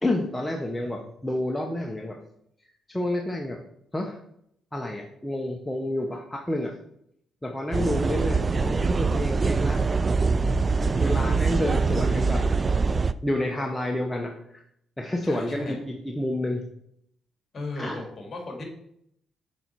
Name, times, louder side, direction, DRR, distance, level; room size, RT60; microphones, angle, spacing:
voice 1, 0.0-2.2 2.6-3.6 3.9-4.2 4.7-6.7 7.4-10.0 11.0-12.4 13.2-14.6 15.0-16.6 17.8-18.0, left 1 dB, 10° left, 1 dB, 0.9 m, -29 dB
sound 1, 7.7-13.1, right 4 dB, 30° right, 0.3 m, -23 dB
voice 2, 11.0-11.5 15.2-15.8 17.5-18.6, left 2 dB, 40° left, 2 dB, 2.5 m, -37 dB
6.8 x 5.2 x 4.6 m, 0.72 s
cardioid pair, 90°, 0 cm